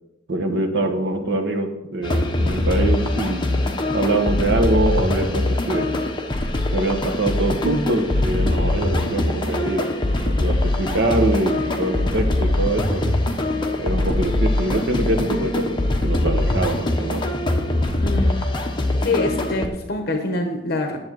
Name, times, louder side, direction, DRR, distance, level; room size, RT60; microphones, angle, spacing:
voice 1, 0.3-3.6 3.9-5.9 6.7-9.9 10.2-13.0 13.8-17.2, right 2 dB, 65° right, 5 dB, 1.3 m, -23 dB
sound 1, 2.0-19.7, left 1 dB, 25° left, 1.0 m, -22 dB
voice 2, 18.0-18.4 19.0-21.0, left 2 dB, 55° left, 5 dB, 0.9 m, -25 dB
11.0 x 7.4 x 4.7 m, 0.98 s
head